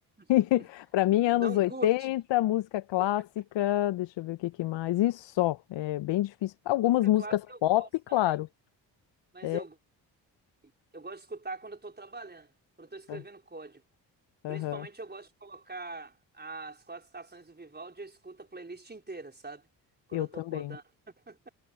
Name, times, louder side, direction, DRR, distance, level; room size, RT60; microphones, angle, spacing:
voice 1, 0.3-3.3 3.5-8.5 9.4-9.6 13.1-13.2 14.4-14.9 20.1-20.8, left 15 dB, 65° left, 1.1 m, -27 dB
voice 2, 1.3-1.9 3.0-3.1 7.0-7.9 9.3-9.8 10.9-12.5 12.8-13.8 14.5-19.7 20.1-21.5, right 3 dB, 20° right, 4.6 m, -43 dB
hypercardioid pair, 45°, 48 cm